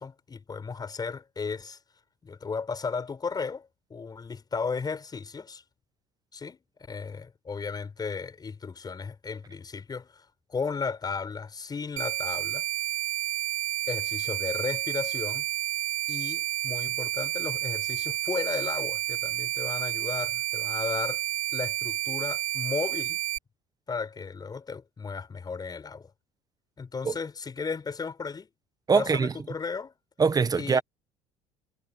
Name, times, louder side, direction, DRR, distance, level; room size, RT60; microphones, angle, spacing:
voice 1, 0.0-1.8 2.2-5.6 6.3-6.6 6.9-12.7 13.9-15.5 16.1-21.2 21.5-23.2 23.9-26.1 26.8-28.5 28.9-29.9 30.5-30.8, left 5 dB, 30° left, 5.2 m, -35 dB
sound 1, 12.0-23.4, right 16 dB, 65° right, 6.4 m, -30 dB
voice 2, 28.9-29.3 30.2-30.8, right 5 dB, 25° right, 1.2 m, -23 dB
hypercardioid pair, 70°, 14 cm